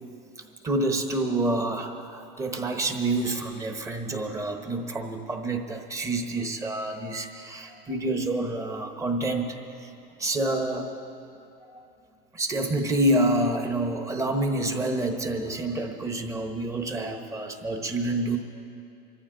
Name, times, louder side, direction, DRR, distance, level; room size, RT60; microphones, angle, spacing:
voice 1, 0.4-9.9 10.2-10.9 11.7-11.8 12.3-18.4, right 1 dB, 15° right, 5 dB, 1.1 m, -28 dB
26.0 x 14.0 x 3.9 m, 2.6 s
cardioid pair, 155°, 20 cm